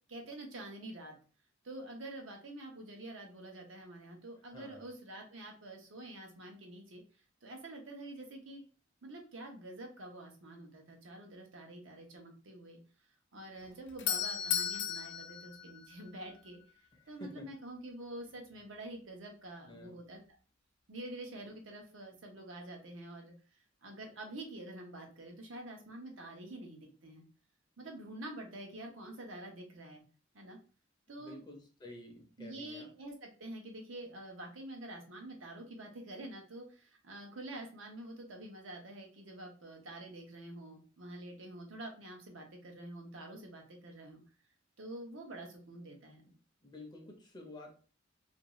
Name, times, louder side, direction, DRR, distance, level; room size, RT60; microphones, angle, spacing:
voice 1, 0.1-1.2 1.6-7.0 7.4-8.6 9.0-12.8 13.3-20.2 20.9-27.2 27.8-30.0 30.3-30.6 31.1-31.4 32.4-44.2 44.8-46.2, right 1 dB, 80° right, 2 dB, 0.8 m, -47 dB
voice 2, 4.5-4.8 16.9-17.5 19.7-19.9 31.2-32.9 46.6-47.7, left 1 dB, 20° left, 2 dB, 0.6 m, -50 dB
Doorbell, 13.6-16.5, left 8 dB, 65° left, 0.4 m, -36 dB
2.5 x 2.3 x 3.0 m, 0.37 s
head